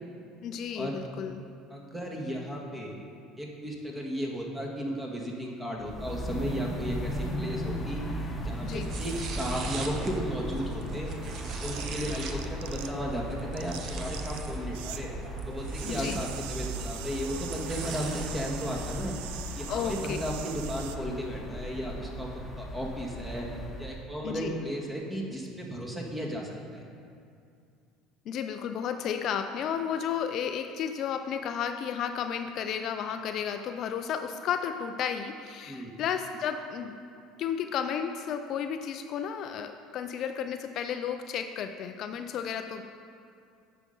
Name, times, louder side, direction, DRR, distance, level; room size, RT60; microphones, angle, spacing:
voice 1, 0.4-1.4 8.6-8.9 15.9-16.2 19.7-20.2 24.2-24.5 28.3-37.0 37.4-42.8, left 8 dB, 55° left, 7 dB, 0.4 m, -33 dB
voice 2, 1.7-2.9 3.4-8.0 8.4-11.1 11.6-15.1 15.5-19.1 19.6-22.3 22.6-23.5 23.8-26.8 35.7-35.9, equal, 10° right, -1 dB, 1.8 m, -34 dB
sound 1, 5.8-24.1, equal, 20° left, 1.3 m, -37 dB
sound 2, 8.6-18.3, right 3 dB, 55° right, 1.0 m, -41 dB
sound 3, 10.5-13.1 13.4-15.1 15.3-21.0, right 12 dB, 80° right, 0.4 m, -43 dB
9.1 x 5.7 x 5.4 m, 2.4 s
supercardioid pair, 90°, 0 cm